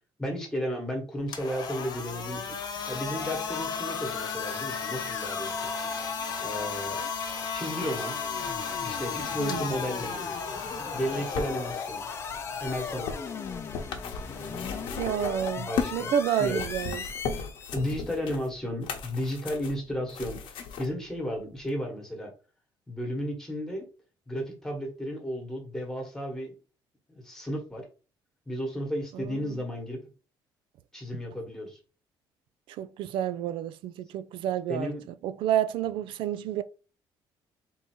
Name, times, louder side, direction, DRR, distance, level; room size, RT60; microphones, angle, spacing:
voice 1, 0.2-2.6 2.9-5.7 6.4-7.0 7.5-8.2 8.8-10.3 10.9-12.0 12.6-13.3 14.2-14.9 15.5-16.1 16.4-16.6 17.7-22.3 22.9-23.9 24.3-26.5 27.1-27.9 28.5-30.0 30.9-31.8 34.7-35.1, equal, 5° left, 1.3 m, -33 dB
sound 1, 1.2-15.2, left 5 dB, 50° left, 1.0 m, -36 dB
sound 2, 3.0-17.9, left 6 dB, 30° left, 0.4 m, -38 dB
sound 3, 10.9-16.0 16.4-20.9 21.7-21.8, left 6 dB, 80° left, 0.9 m, -37 dB
voice 2, 15.0-17.0 29.1-29.6 32.8-34.9 35.2-36.6, right 10 dB, 85° right, 0.4 m, -30 dB
3.7 x 2.8 x 4.5 m
cardioid pair, 165°, 9 cm